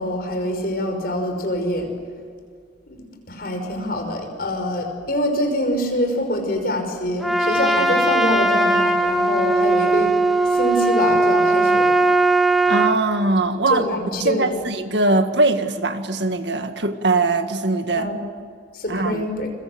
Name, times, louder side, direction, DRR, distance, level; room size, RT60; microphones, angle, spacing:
voice 1, 0.0-1.9 2.9-10.1 10.4-12.0 13.7-14.7 17.9-18.2 18.7-19.5, equal, 55° left, 4 dB, 5.5 m, -25 dB
Trumpet, 7.2-13.0, right 2 dB, ahead, 2.0 m, -18 dB
voice 2, 12.7-13.8 14.2-18.1 18.9-19.2, right 2 dB, 70° right, 7 dB, 1.9 m, -21 dB
29.5 x 23.0 x 7.9 m, 2.1 s
head